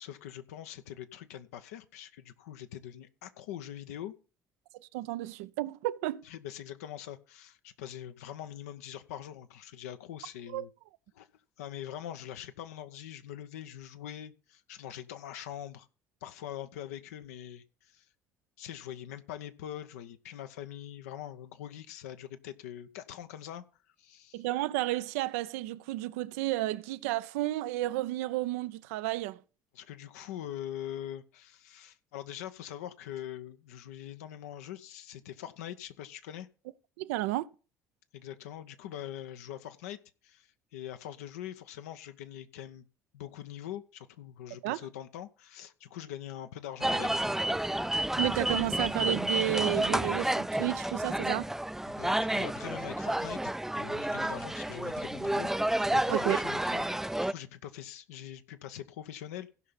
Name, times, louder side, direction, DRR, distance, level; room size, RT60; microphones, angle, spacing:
voice 1, 0.0-4.1 6.2-10.7 11.1-11.3 11.6-15.9 16.2-18.1 18.6-23.6 24.0-24.4 29.7-36.5 38.1-40.0 40.2-42.9 43.1-47.3 51.9-55.5 55.8-59.5, left 11 dB, 70° left, 0.7 m, -43 dB
voice 2, 4.9-6.2 10.5-10.7 24.3-29.4 37.0-37.5 44.6-44.8 48.2-51.5 56.1-56.4, right 16 dB, 65° right, 0.4 m, -32 dB
sound 1, 46.8-57.3, right 1 dB, 5° right, 0.4 m, -30 dB
16.0 x 5.6 x 4.2 m
figure-of-eight pair, 55°, 9 cm